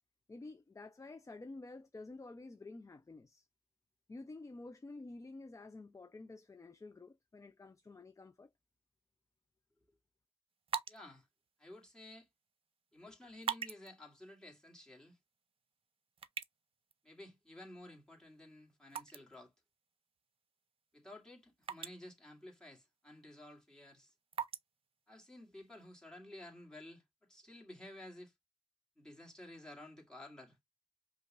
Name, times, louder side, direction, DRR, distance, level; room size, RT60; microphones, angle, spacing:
voice 1, 0.3-3.5 4.1-8.5, left 2 dB, 30° left, 0.5 m, -50 dB
sound 1, 10.5-25.9, right 7 dB, 60° right, 0.5 m, -48 dB
voice 2, 10.9-11.3 11.6-12.3 12.9-15.2 17.0-19.5 20.9-24.1 25.1-28.3 29.0-30.6, left 1 dB, 5° left, 2.3 m, -53 dB
5.1 x 2.5 x 2.5 m
cardioid pair, 50°, 11 cm